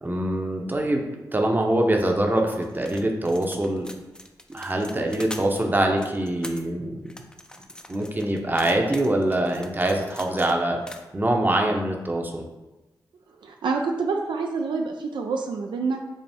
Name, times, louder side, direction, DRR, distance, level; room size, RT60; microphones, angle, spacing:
voice 1, 0.0-3.9 4.5-7.1 7.9-12.4, right 1 dB, 25° right, 2 dB, 0.7 m, -24 dB
sound 1, 2.6-5.6 6.0-6.6 7.1-10.5 10.9-11.1, left 1 dB, 10° left, 0.4 m, -43 dB
voice 2, 13.4-16.0, right 4 dB, 80° right, 3 dB, 0.3 m, -27 dB
5.3 x 2.0 x 3.4 m, 1.1 s
cardioid pair, 45°, 8 cm